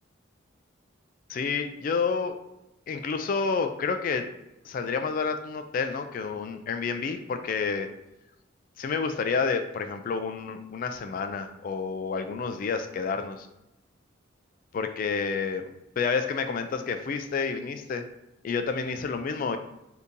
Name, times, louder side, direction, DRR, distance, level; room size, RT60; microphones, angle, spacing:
voice 1, 1.3-2.4 2.9-4.3 4.7-7.9 8.8-13.5 14.7-15.7 16.0-18.0 18.4-19.6, left 5 dB, 45° left, 7 dB, 0.3 m, -29 dB
2.8 x 2.6 x 3.6 m, 0.93 s
head